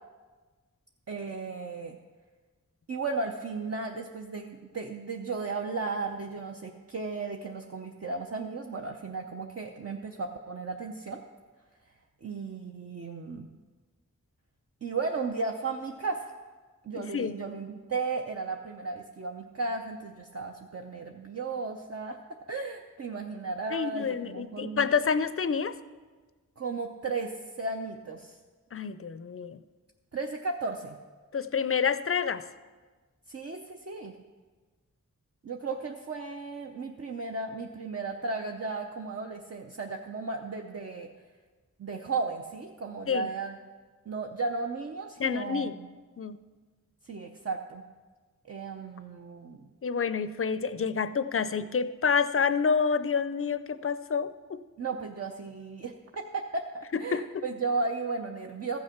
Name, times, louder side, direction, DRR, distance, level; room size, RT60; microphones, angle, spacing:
voice 1, 1.1-2.0 2.9-11.2 12.2-13.5 14.8-16.3 16.8-24.9 26.6-28.4 30.1-31.0 33.3-34.1 35.4-41.1 41.8-43.6 44.1-45.9 47.0-47.8 48.5-49.7 54.8-58.8, right 4 dB, 50° right, 2 dB, 0.7 m, -35 dB
voice 2, 16.9-17.4 23.7-25.7 28.7-29.6 31.3-32.4 43.1-43.3 45.2-45.8 46.2-46.4 49.8-54.6 56.9-57.4, left 6 dB, 45° left, 12 dB, 0.5 m, -28 dB
14.0 x 6.4 x 5.8 m, 1.4 s
wide cardioid pair, 65°, 32 cm